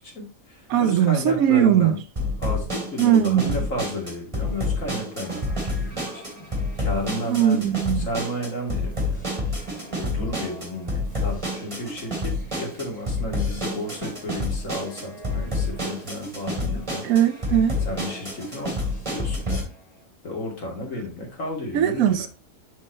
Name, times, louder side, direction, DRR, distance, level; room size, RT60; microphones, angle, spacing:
voice 1, 0.0-2.0 2.4-6.2 6.8-17.1 17.8-19.7 20.2-22.3, left 1 dB, 65° left, 2.8 m, -33 dB
voice 2, 0.7-1.9 3.0-3.6 7.3-8.1 17.0-17.8 21.7-22.3, right 10 dB, 85° right, 1.0 m, -20 dB
sound 1, 2.2-19.6, left 2 dB, 20° right, 3.0 m, -28 dB
sound 2, 4.3-20.1, equal, 30° left, 2.0 m, -48 dB
6.3 x 5.5 x 4.1 m
omnidirectional pair, 1.4 m